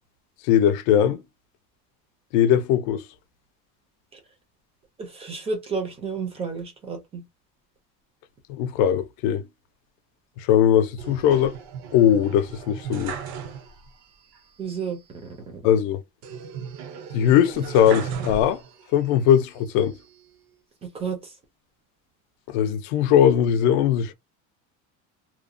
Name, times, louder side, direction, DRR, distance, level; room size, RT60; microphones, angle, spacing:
voice 1, 0.5-1.2 2.3-3.0 8.5-9.5 10.4-11.5 11.9-13.2 15.6-16.0 17.1-18.6 18.9-19.9 22.5-24.1, left 9 dB, 65° left, 0.5 m, -20 dB
voice 2, 5.0-7.2 14.6-15.6 20.8-21.3, right 5 dB, 15° right, 0.3 m, -32 dB
sound 1, 11.0-14.0 14.3-14.4 16.2-19.0 19.5-20.3, right 6 dB, 65° right, 0.6 m, -36 dB
2.9 x 2.0 x 2.5 m
cardioid pair, 180°, 38 cm